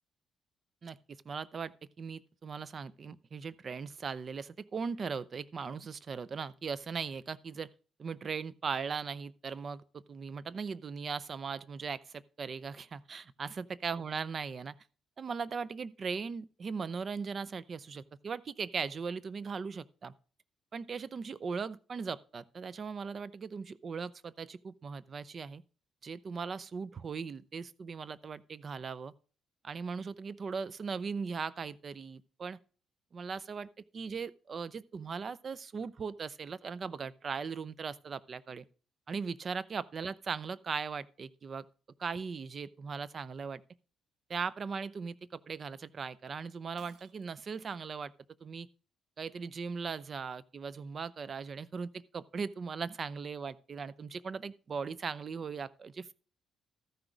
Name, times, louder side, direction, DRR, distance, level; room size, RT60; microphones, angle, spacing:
voice 1, 1.3-7.7 8.0-14.7 15.2-20.1 20.7-25.6 26.0-29.1 29.6-32.6 33.1-38.7 39.1-41.6 42.0-43.6 44.3-48.1 48.4-48.7 49.2-56.1, right 5 dB, 45° right, 0.5 m, -39 dB
Shatter, 46.8-47.6, right 7 dB, 70° right, 1.0 m, -62 dB
13.5 x 6.0 x 5.1 m
cardioid pair, 90°, 0 cm